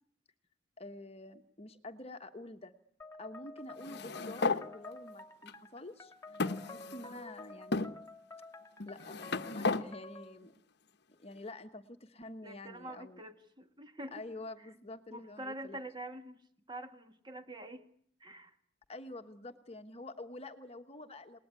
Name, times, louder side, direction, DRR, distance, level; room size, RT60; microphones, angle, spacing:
voice 1, 0.8-2.7 3.2-7.9 8.8-10.5 11.1-13.2 14.1-15.8 18.9-21.4, left 2 dB, 30° left, 7 dB, 1.2 m, -48 dB
sound 1, 3.0-10.4, left 2 dB, 15° left, 2.1 m, -51 dB
sound 2, 3.8-4.6 5.5-5.6 6.4-7.2 7.7-7.9 8.8-9.8, left 3 dB, 60° left, 1.1 m, -34 dB
voice 2, 12.4-14.2 14.6-14.7 15.1-16.4 16.7-17.9 18.2-18.6, right 1 dB, 25° right, 8 dB, 2.0 m, -45 dB
28.5 x 19.5 x 9.6 m, 0.64 s
head